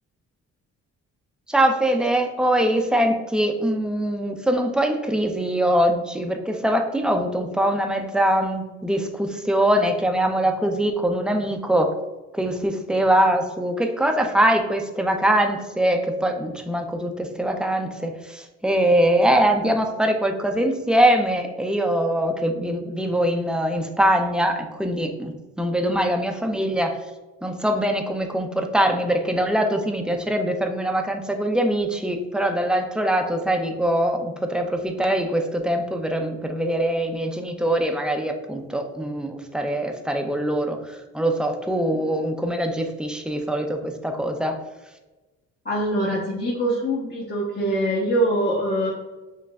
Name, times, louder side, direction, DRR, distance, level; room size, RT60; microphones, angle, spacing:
voice 1, 1.5-11.9 12.3-27.0 27.4-40.8 41.1-44.6, right 1 dB, 5° right, 4 dB, 0.6 m, -23 dB
voice 2, 45.6-48.9, right 1 dB, 35° left, -6 dB, 1.1 m, -23 dB
6.9 x 3.1 x 2.4 m, 1.1 s
cardioid pair, 90°, 30 cm